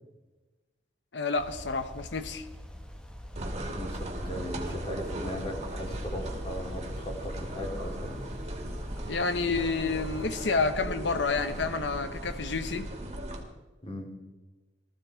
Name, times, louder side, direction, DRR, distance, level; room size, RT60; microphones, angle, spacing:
voice 1, 1.1-2.5 9.1-12.9, left 4 dB, 75° left, 10 dB, 0.9 m, -29 dB
sound 1, 1.4-10.3, equal, 5° left, 1.3 m, -45 dB
sound 2, 3.4-13.4, right 1 dB, 35° right, 2.5 m, -37 dB
voice 2, 3.6-8.2 13.8-14.1, equal, 30° left, 1 dB, 3.2 m, -38 dB
17.5 x 14.5 x 4.5 m, 1.2 s
head